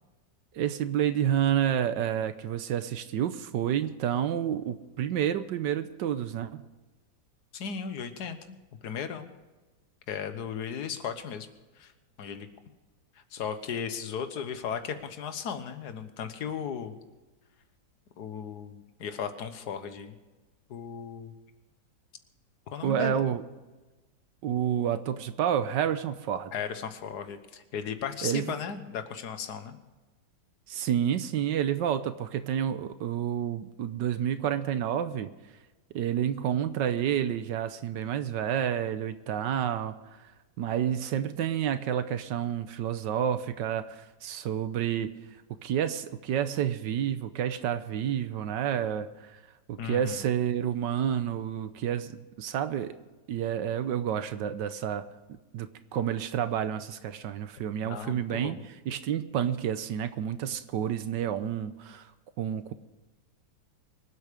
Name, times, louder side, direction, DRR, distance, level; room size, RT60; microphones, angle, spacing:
voice 1, 0.5-6.6 22.8-23.4 24.4-26.5 28.2-28.5 30.7-35.3 35.9-40.3 40.6-45.1 45.6-49.4 49.7-52.9 53.3-58.6 58.9-62.1 62.4-62.7, right 9 dB, 75° right, 11 dB, 1.4 m, -29 dB
voice 2, 7.5-8.6 8.8-9.3 10.1-11.5 11.8-11.9 12.2-12.5 13.3-17.0 18.2-20.1 20.7-21.3 22.7-23.2 26.5-29.8 49.8-50.2 57.8-58.6, left 7 dB, 65° left, 9 dB, 1.7 m, -36 dB
25.0 x 8.4 x 5.1 m, 1.2 s
omnidirectional pair, 2.0 m